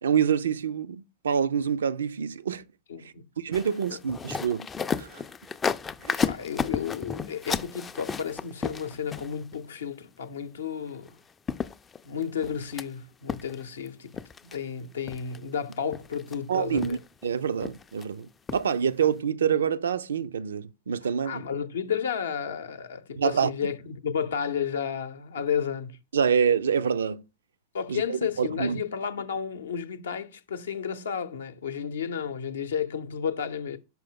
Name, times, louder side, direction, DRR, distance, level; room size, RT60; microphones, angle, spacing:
voice 1, 0.0-2.7 3.4-4.7 5.0-5.2 6.0-6.3 16.5-21.4 23.2-23.5 26.1-27.2 27.9-28.8, right 7 dB, 65° right, 0.3 m, -26 dB
voice 2, 2.9-3.3 6.3-11.2 12.0-17.0 21.3-26.0 27.7-33.8, left 7 dB, 65° left, 0.6 m, -32 dB
sound 1, 3.5-9.6 11.1-11.2 11.5-12.8 13.3-13.9 14.1-14.6 15.1-15.4 15.7-16.4 16.8-17.3 17.6-18.0 18.5-18.7 19.0-19.1, left 6 dB, 20° left, 0.3 m, -33 dB
5.8 x 4.6 x 3.7 m
figure-of-eight pair, 90°, 0 cm